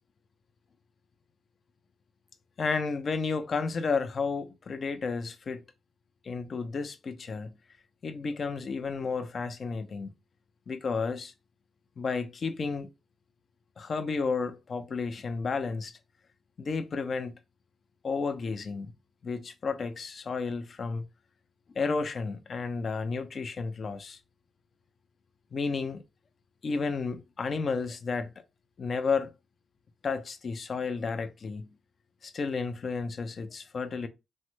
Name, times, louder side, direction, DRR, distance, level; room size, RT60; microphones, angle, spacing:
voice 1, 2.6-5.6 6.2-7.6 8.0-10.1 10.7-11.3 12.0-12.9 13.8-16.0 16.6-17.4 18.0-18.9 19.2-21.1 21.7-24.2 25.5-26.0 26.6-28.3 28.8-29.3 30.0-31.8 32.2-34.1, left 4 dB, 55° left, 0.4 m, -32 dB
3.2 x 2.2 x 3.0 m
supercardioid pair, 50°, 0 cm